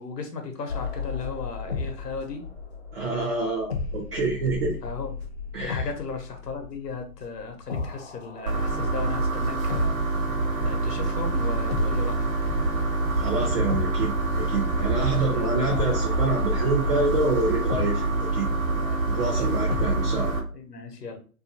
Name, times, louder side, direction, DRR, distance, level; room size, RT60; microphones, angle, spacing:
voice 1, 0.0-2.4 4.8-5.2 5.6-12.3 14.9-15.5 18.7-19.7 20.5-21.2, left 4 dB, 85° left, 5 dB, 0.8 m, -36 dB
sound 1, 0.7-10.5 11.7-20.1, left 4 dB, 45° left, 0.4 m, -35 dB
voice 2, 2.9-4.8 5.5-5.9 13.2-18.5 19.1-20.3, right 3 dB, 40° right, -2 dB, 0.6 m, -27 dB
sound 2, 8.5-20.4, right 3 dB, 60° right, 1.0 m, -26 dB
2.6 x 2.4 x 2.6 m, 0.38 s
hypercardioid pair, 145°, 47 cm